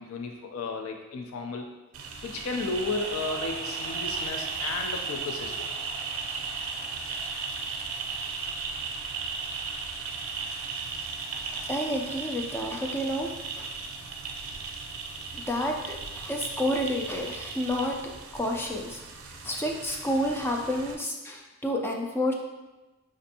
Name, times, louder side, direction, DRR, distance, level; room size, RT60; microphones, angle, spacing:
voice 1, 0.0-1.7 2.0-5.7, left 3 dB, 80° left, 3 dB, 0.4 m, -33 dB
sound 1, 1.9-20.9, right 4 dB, 80° right, 0.5 m, -36 dB
voice 2, 11.5-13.3 13.6-13.7 15.3-19.0 19.4-22.3, equal, 10° left, 1 dB, 0.3 m, -30 dB
5.2 x 2.5 x 2.7 m, 1.1 s
head